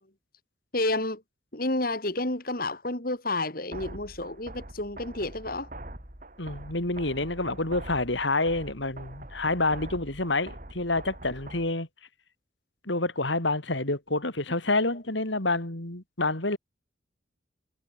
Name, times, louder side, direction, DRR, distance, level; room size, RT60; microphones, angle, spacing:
voice 1, 0.7-1.2 1.5-5.7, left 2 dB, 50° left, 3.9 m, -30 dB
sound 1, 3.7-11.7, right 1 dB, 45° right, 4.5 m, -44 dB
voice 2, 6.4-11.9 12.9-16.6, left 2 dB, 70° left, 4.0 m, -28 dB
head